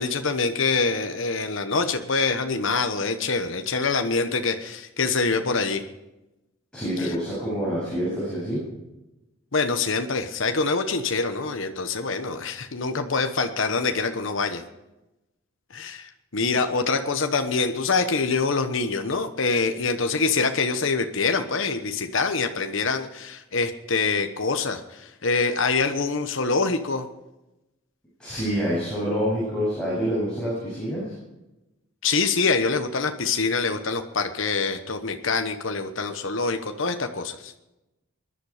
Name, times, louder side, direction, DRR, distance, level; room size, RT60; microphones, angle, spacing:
voice 1, 0.0-5.8 7.0-7.1 9.5-14.6 15.7-27.1 32.0-37.5, left 4 dB, 65° left, 6 dB, 1.1 m, -25 dB
voice 2, 6.7-8.6 28.2-31.1, equal, 5° left, -8 dB, 7.9 m, -27 dB
21.0 x 11.5 x 5.0 m, 0.97 s
head